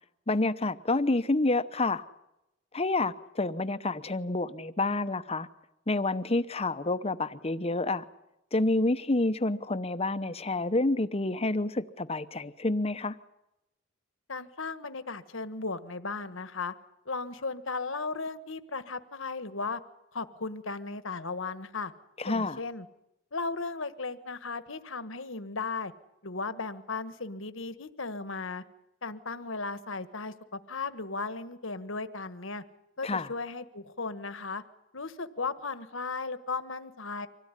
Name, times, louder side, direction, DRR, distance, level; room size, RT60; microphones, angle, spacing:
voice 1, 0.3-2.0 2.7-5.5 5.9-8.0 8.5-13.1 22.2-22.6 33.0-33.3, left 2 dB, 30° left, 0.9 m, -28 dB
voice 2, 14.3-16.7 17.0-19.8 20.1-21.9 22.3-22.9 23.3-25.9 26.2-28.6 29.0-32.6 33.0-34.6 34.9-37.3, left 4 dB, 65° left, 1.5 m, -36 dB
25.5 x 17.0 x 9.9 m
head